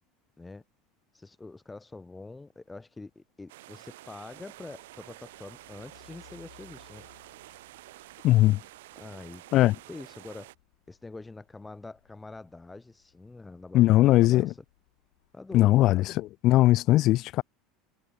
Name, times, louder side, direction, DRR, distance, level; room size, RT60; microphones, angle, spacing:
voice 1, 1.1-7.1 8.9-9.4 9.9-10.5 10.9-14.5 15.3-16.0, left 3 dB, 10° left, 1.5 m, -45 dB
sound 1, 3.5-10.6, right 17 dB, 90° right, 0.9 m, -50 dB
Truck, 4.3-15.5, left 17 dB, 90° left, 6.1 m, -63 dB
voice 2, 8.2-8.6 9.5-9.8 13.7-14.5 15.5-17.4, left 16 dB, 50° left, 0.3 m, -20 dB
supercardioid pair, 130°, 0 cm